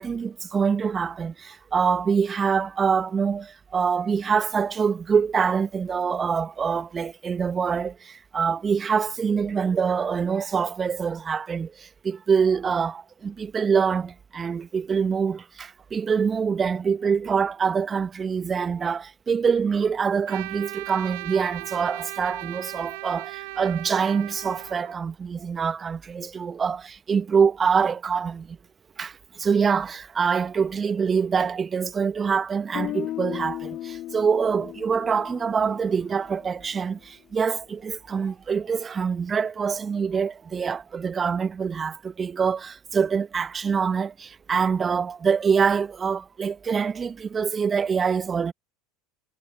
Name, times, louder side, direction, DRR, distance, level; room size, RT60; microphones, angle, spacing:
voice 1, 0.0-28.6 29.0-48.5, right 6 dB, 25° right, 1.5 m, -25 dB
Trumpet, 20.3-24.9, right 26 dB, 60° right, 2.1 m, -37 dB
Guitar, 32.7-36.7, left 14 dB, 45° left, 2.9 m, -36 dB
figure-of-eight pair, 75°, 0 cm